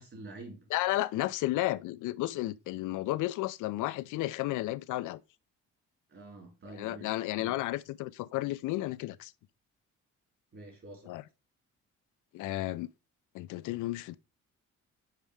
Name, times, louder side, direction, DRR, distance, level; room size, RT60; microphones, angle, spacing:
voice 1, 0.0-0.7 6.1-7.6 10.5-11.2, right 2 dB, 45° right, 4.2 m, -48 dB
voice 2, 0.7-5.2 6.8-9.3 11.1-11.2 12.3-12.9 13.3-14.2, left 16 dB, 85° left, 0.5 m, -32 dB
7.5 x 4.6 x 3.3 m
cardioid pair, 90°, 30 cm